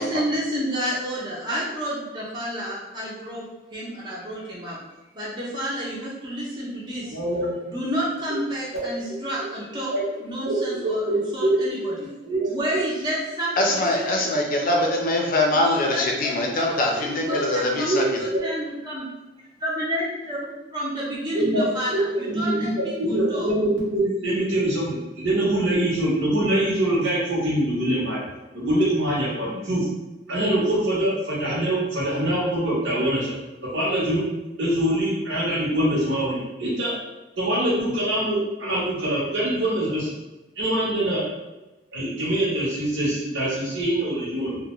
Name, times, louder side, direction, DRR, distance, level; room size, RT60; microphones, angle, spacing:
voice 1, 0.0-3.4 3.7-4.8 5.1-7.1 7.7-9.9 10.2-12.1 12.5-14.3 15.5-19.1 19.6-20.4 20.7-23.5, equal, 25° right, -6 dB, 0.5 m, -30 dB
voice 2, 7.1-7.6 8.7-8.9 9.9-10.0 10.4-11.1 11.4-11.5 11.8-11.9 12.2-12.5 12.7-12.8 17.2-17.5 17.8-18.4 21.3-28.2 28.5-29.9 30.3-33.3 33.7-34.2 34.6-36.9 37.4-40.1 40.6-41.2 41.9-44.6, right 1 dB, 85° right, -7 dB, 0.8 m, -24 dB
voice 3, 13.6-18.0, left 1 dB, 50° left, 0 dB, 0.5 m, -23 dB
2.3 x 2.1 x 2.9 m, 1.1 s
head